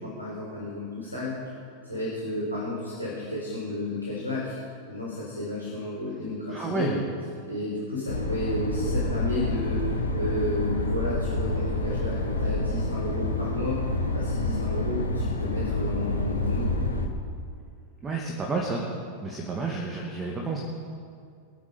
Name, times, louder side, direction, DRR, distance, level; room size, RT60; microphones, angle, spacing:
voice 1, 0.0-1.3 1.8-4.6 4.9-6.9 7.5-13.8 14.1-16.7, left 1 dB, 85° right, -6 dB, 4.6 m, -32 dB
voice 2, 6.5-7.0 18.0-18.9 19.2-20.6, right 3 dB, 20° right, -1 dB, 2.2 m, -30 dB
sound 1, 8.1-17.1, left 2 dB, 80° left, 1.8 m, -28 dB
23.0 x 8.6 x 5.4 m, 2.3 s
figure-of-eight pair, 90°, 0 cm